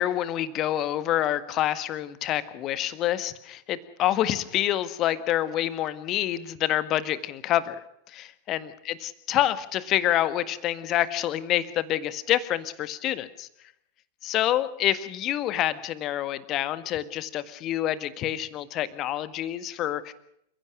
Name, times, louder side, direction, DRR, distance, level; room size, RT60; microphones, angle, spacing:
voice 1, 0.0-7.8 8.1-13.5 14.2-20.1, left 12 dB, 35° left, 14 dB, 1.7 m, -27 dB
29.0 x 16.0 x 6.4 m, 0.76 s
figure-of-eight pair, 90°, 0 cm